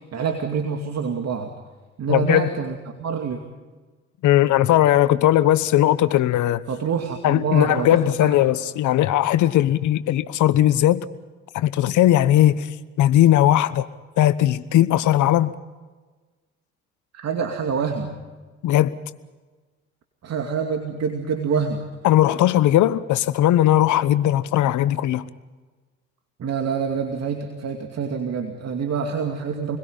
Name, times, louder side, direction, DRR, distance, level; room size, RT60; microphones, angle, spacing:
voice 1, 0.0-1.5 2.0-3.4 6.7-8.4 17.1-18.2 20.2-21.9 26.4-29.8, right 6 dB, 50° right, 2.5 m, -26 dB
voice 2, 2.1-2.5 4.2-6.6 7.2-11.0 11.5-12.7 13.0-13.9 14.2-15.6 18.6-18.9 22.0-25.2, left 13 dB, 60° left, 1.1 m, -18 dB
28.0 x 21.5 x 5.6 m
hypercardioid pair, 55°, 33 cm